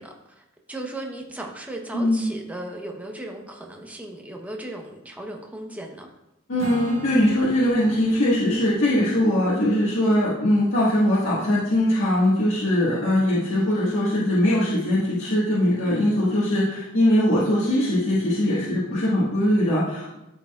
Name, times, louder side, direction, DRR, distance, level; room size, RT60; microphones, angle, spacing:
voice 1, 0.0-6.1 15.8-16.2, right 1 dB, 5° right, 1 dB, 0.9 m, -36 dB
voice 2, 1.9-2.4 6.5-20.2, left 1 dB, 75° left, -9 dB, 1.6 m, -21 dB
Strum, 6.6-11.9, equal, 90° right, 1.4 m, -42 dB
13.0 x 4.6 x 2.4 m, 0.89 s
head